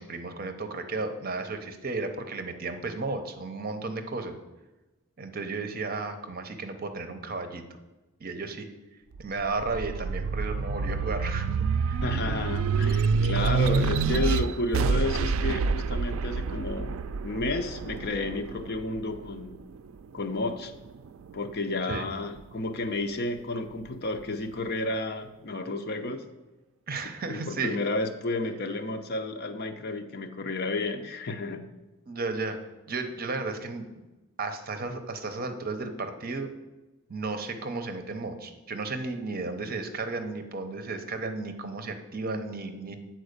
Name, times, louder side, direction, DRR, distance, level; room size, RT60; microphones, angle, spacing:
voice 1, 0.0-4.4 5.2-7.6 8.2-8.7 9.2-12.0 21.9-22.1 26.9-27.8 32.1-32.6 32.9-33.8 34.4-36.5 37.1-43.0, right 3 dB, 45° right, 7 dB, 0.8 m, -34 dB
sound 1, 9.1-19.9 20.5-21.6, right 5 dB, 80° right, 0.3 m, -28 dB
voice 2, 12.0-19.5 20.1-20.7 21.3-26.2 27.3-31.7, left 2 dB, 55° left, 8 dB, 0.7 m, -31 dB
8.0 x 4.5 x 6.6 m, 1.1 s
head